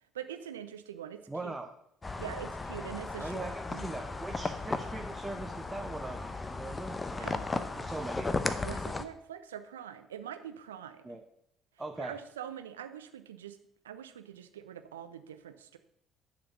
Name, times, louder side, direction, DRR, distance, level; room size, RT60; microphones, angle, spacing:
voice 1, 0.1-1.5 2.2-3.9 7.2-7.4 8.6-11.2 12.0-13.6 13.8-15.8, right 9 dB, 80° right, 10 dB, 0.6 m, -44 dB
voice 2, 1.3-1.7 3.2-7.3 7.8-8.4 8.8-9.0 11.0-11.2 11.8-12.1, right 2 dB, 15° right, 3 dB, 0.8 m, -41 dB
sound 1, 2.0-9.0, left 3 dB, 25° left, 0.8 m, -36 dB
10.5 x 5.1 x 6.0 m, 0.72 s
figure-of-eight pair, 50°, 0 cm